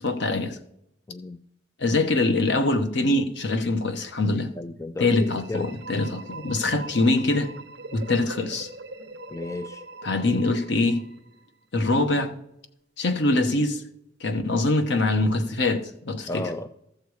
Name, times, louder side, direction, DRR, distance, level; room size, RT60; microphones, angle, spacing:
voice 1, 0.0-0.6 1.8-4.5 5.0-7.5 7.9-8.7 10.0-11.0 11.7-12.3 13.0-13.8 14.2-16.4, left 2 dB, 65° left, 1.0 m, -23 dB
voice 2, 1.1-1.4 4.6-5.7 9.3-9.8 16.3-16.7, left 2 dB, 15° left, 0.3 m, -33 dB
sound 1, 5.0-11.8, right 3 dB, 60° right, 0.8 m, -43 dB
14.0 x 6.8 x 4.8 m
head